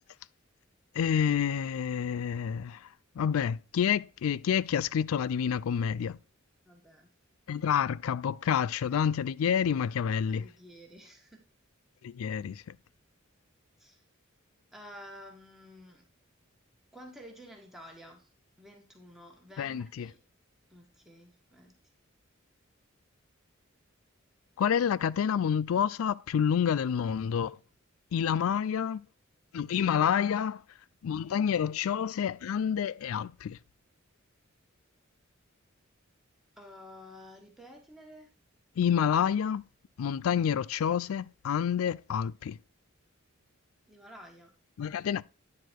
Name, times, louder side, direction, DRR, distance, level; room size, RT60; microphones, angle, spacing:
voice 1, 0.9-2.9 3.2-6.2 7.5-10.5 12.0-12.8 19.6-20.1 24.6-27.6 28.1-29.0 29.5-30.6 31.0-33.6 38.8-39.6 40.0-42.6 44.8-45.2, left 8 dB, 75° left, 0.3 m, -28 dB
voice 2, 6.7-7.1 10.3-11.4 13.8-14.0 14.7-16.1 16.9-18.3 18.6-20.2 20.7-21.7 36.6-38.3 43.9-44.6, equal, ahead, 1.7 m, -51 dB
9.8 x 4.5 x 4.5 m
head